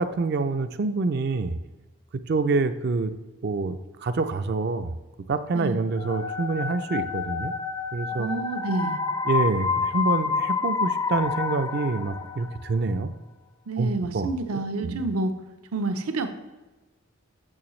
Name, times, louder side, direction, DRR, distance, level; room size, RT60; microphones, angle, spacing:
voice 1, 0.0-1.6 2.3-3.1 3.4-4.9 5.3-7.5 7.9-8.3 9.3-13.1 13.8-15.0, right 3 dB, 45° right, 10 dB, 0.4 m, -26 dB
sound 1, 5.9-12.8, left 5 dB, 20° left, 0.4 m, -28 dB
voice 2, 8.1-9.0 13.7-15.4 15.7-16.3, right 3 dB, 85° right, 8 dB, 0.7 m, -28 dB
8.7 x 6.4 x 3.1 m, 1.2 s
head